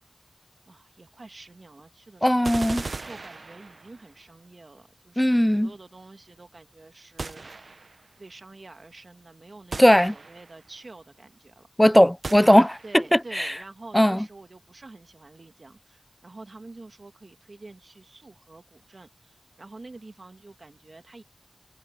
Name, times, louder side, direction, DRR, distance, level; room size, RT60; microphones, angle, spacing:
voice 1, 0.7-2.6 3.0-7.4 8.2-11.7 12.8-21.2, right 3 dB, 70° right, 1.6 m, -47 dB
voice 2, 2.2-2.8 5.2-5.7 9.8-10.1 11.8-13.5 13.9-14.2, equal, 10° left, 0.3 m, -18 dB
sound 1, 2.4-4.1 7.2-8.1 9.7-10.6 12.2-13.1, right 3 dB, 90° right, 0.9 m, -37 dB
wide cardioid pair, 45°, 0 cm